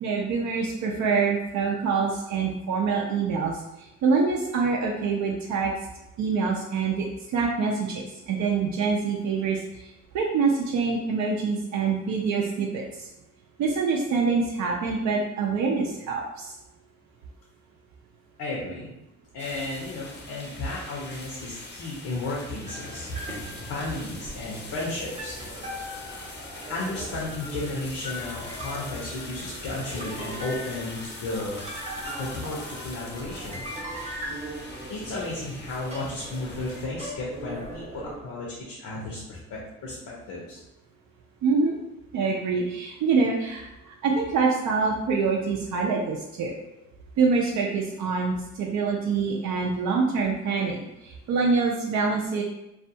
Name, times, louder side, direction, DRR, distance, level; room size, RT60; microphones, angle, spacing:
voice 1, 0.0-3.6 4.0-5.7 6.2-7.1 7.3-13.1 13.6-16.5 41.4-41.7 42.1-46.6 47.2-52.4, right 4 dB, 70° right, -1 dB, 0.5 m, -25 dB
voice 2, 18.4-18.9 19.3-25.4 26.7-33.6 34.9-40.6, left 2 dB, 80° left, -4 dB, 0.7 m, -34 dB
sound 1, 19.4-36.9, left 3 dB, 35° left, 0.5 m, -43 dB
sound 2, 22.7-38.2, equal, 20° right, 0.7 m, -39 dB
2.4 x 2.2 x 2.7 m, 0.92 s
cardioid pair, 90°, 30 cm